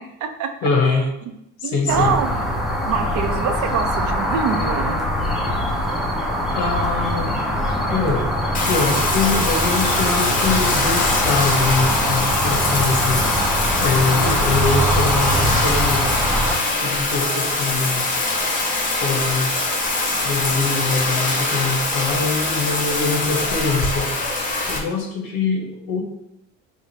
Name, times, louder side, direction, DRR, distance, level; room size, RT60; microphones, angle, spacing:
voice 1, 0.0-0.5 0.8-0.9 1.3-1.4 1.6-2.3 2.9-5.0 9.1-9.2 13.9-14.4, right 6 dB, 55° right, 7 dB, 0.5 m, -25 dB
voice 2, 0.6-1.1 1.6-2.1 6.5-7.4 7.9-8.4 8.7-13.5 13.8-16.0 16.8-18.1 19.0-19.5 20.2-24.1 24.7-26.0, left 4 dB, 85° left, 2 dB, 1.1 m, -23 dB
sound 1, 1.9-16.6, equal, ahead, 0.5 m, -22 dB
Bathtub (filling or washing), 8.5-24.8, left 2 dB, 25° left, 0.8 m, -23 dB
3.4 x 2.5 x 4.1 m, 0.80 s
cardioid pair, 115°, 36 cm